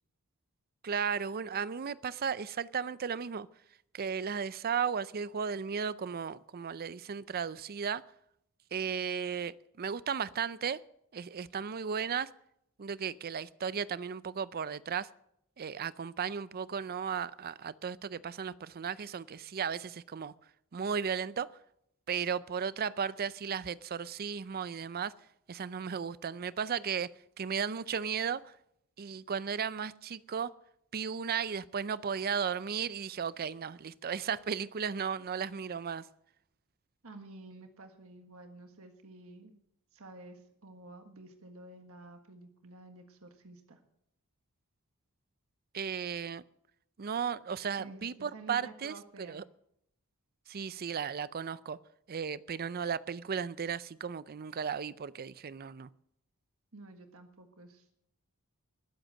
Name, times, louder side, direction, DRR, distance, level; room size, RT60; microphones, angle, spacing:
voice 1, 0.8-3.5 3.9-8.0 8.7-10.8 11.1-12.3 12.8-15.1 15.6-20.3 20.7-21.5 22.1-25.1 25.5-27.1 27.4-28.5 29.0-30.5 30.9-36.1 45.7-46.4 47.0-48.9 49.3-49.4 50.5-51.8 52.1-55.9, right 7 dB, 45° right, 0.5 m, -35 dB
voice 2, 37.0-39.6 39.9-43.8 47.8-49.4 56.7-57.9, right 2 dB, 70° right, 1.5 m, -51 dB
20.5 x 8.0 x 6.5 m
head